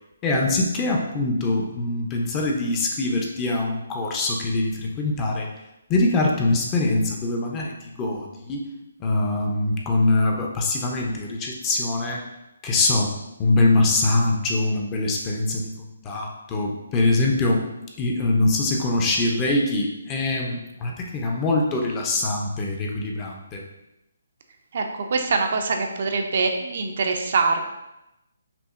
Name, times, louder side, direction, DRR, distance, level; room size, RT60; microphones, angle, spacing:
voice 1, 0.2-5.5 5.9-8.6 9.0-12.2 12.6-13.1 13.4-17.6 18.0-23.6, left 2 dB, 20° left, 0 dB, 0.5 m, -23 dB
voice 2, 25.1-27.6, right 4 dB, 55° right, 4 dB, 0.4 m, -23 dB
5.7 x 2.0 x 2.4 m, 0.92 s
hypercardioid pair, 155°, 0 cm